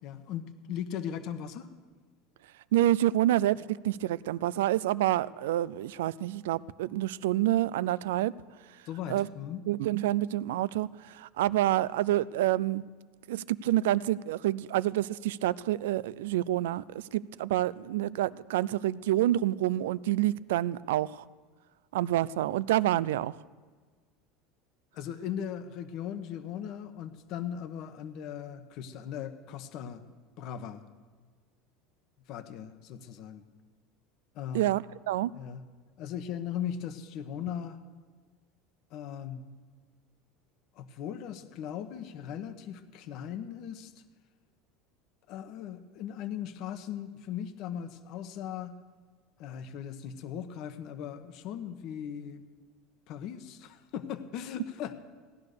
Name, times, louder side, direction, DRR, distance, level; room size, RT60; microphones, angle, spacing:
voice 1, 0.0-1.7 8.9-9.6 24.9-30.0 30.4-30.8 32.3-33.4 34.3-34.7 35.3-35.6 36.0-37.8 38.9-39.4 40.7-44.0 45.3-48.7 49.4-52.4 53.1-54.9, left 9 dB, 55° left, 1.2 m, -38 dB
voice 2, 2.7-8.3 9.1-9.3 9.7-12.8 13.3-21.2 21.9-23.4 34.5-35.3, right 14 dB, 90° right, 0.4 m, -28 dB
16.5 x 10.5 x 6.7 m
supercardioid pair, 125°, 0 cm